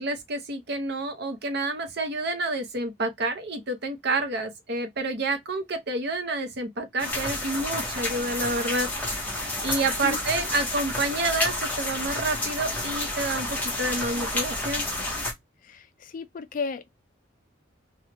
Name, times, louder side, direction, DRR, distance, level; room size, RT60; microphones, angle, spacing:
voice 1, 0.0-14.9, right 2 dB, 55° right, 0.7 m, -29 dB
sound 1, 7.0-15.3, left 1 dB, 10° left, 0.9 m, -30 dB
voice 2, 10.0-10.5 15.6-16.9, left 5 dB, 45° left, 0.3 m, -35 dB
3.3 x 2.3 x 2.8 m
head